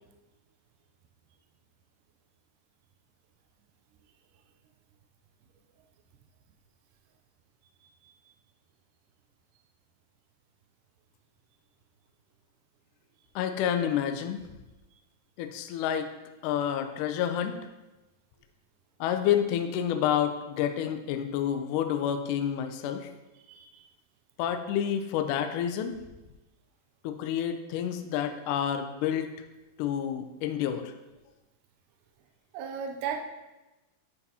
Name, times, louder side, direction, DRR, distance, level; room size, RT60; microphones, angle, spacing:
voice 1, 13.4-14.4 15.4-16.1 16.4-17.6 19.0-23.1 24.4-26.0 27.0-29.3 29.8-30.9, left 9 dB, 90° left, 7 dB, 1.8 m, -29 dB
voice 2, 23.4-23.8 32.5-33.2, right 7 dB, 80° right, 3 dB, 1.9 m, -35 dB
9.5 x 5.4 x 2.8 m, 1.1 s
omnidirectional pair, 4.2 m